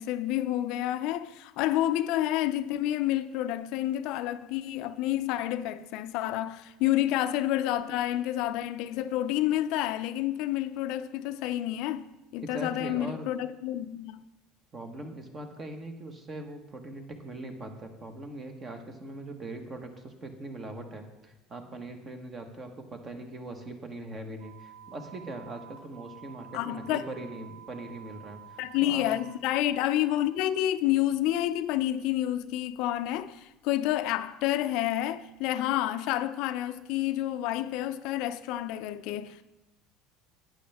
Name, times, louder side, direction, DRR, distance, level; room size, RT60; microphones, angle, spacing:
voice 1, 0.0-14.2 26.5-27.0 28.6-39.4, left 13 dB, 65° left, 0.4 m, -29 dB
voice 2, 12.4-13.3 14.7-29.1, right 2 dB, 30° right, 1.3 m, -41 dB
sound 1, 24.4-30.7, right 10 dB, 50° right, 3.6 m, -51 dB
11.5 x 8.9 x 3.5 m
cardioid pair, 135°, 0 cm